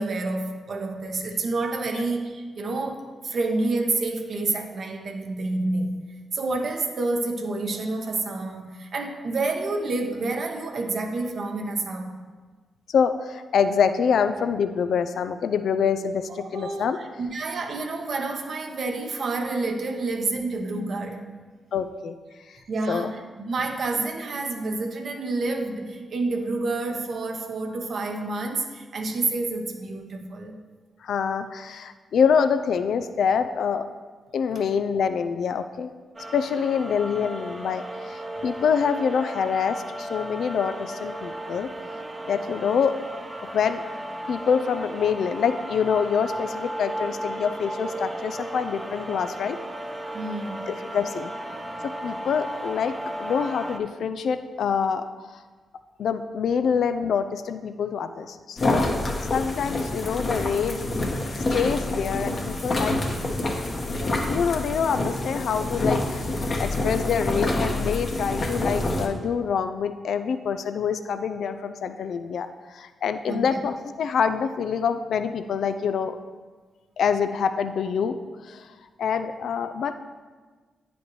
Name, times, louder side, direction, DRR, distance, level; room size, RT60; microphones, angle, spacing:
voice 1, 0.0-5.9 6.3-12.1 16.4-21.3 22.7-23.2 23.5-30.6 50.1-50.7 73.3-73.4, right 3 dB, 65° right, 3 dB, 0.9 m, -28 dB
voice 2, 12.9-17.0 20.0-20.1 21.7-22.2 22.9-23.1 31.0-33.9 34.3-35.9 36.3-41.7 42.3-43.0 43.5-43.8 44.3-49.6 50.7-51.3 51.8-52.9 53.2-55.1 56.0-58.9 59.2-60.9 61.5-63.0 64.0-66.3 66.6-76.2 77.0-78.2 78.4-78.7 79.0-79.9, left 6 dB, 70° left, 10 dB, 0.3 m, -26 dB
sound 1, 36.2-53.8, right 1 dB, 25° right, 0.7 m, -35 dB
sound 2, 58.6-69.1, left 2 dB, 50° left, 1.2 m, -27 dB
9.3 x 5.1 x 3.1 m, 1.4 s
supercardioid pair, 40°, 0 cm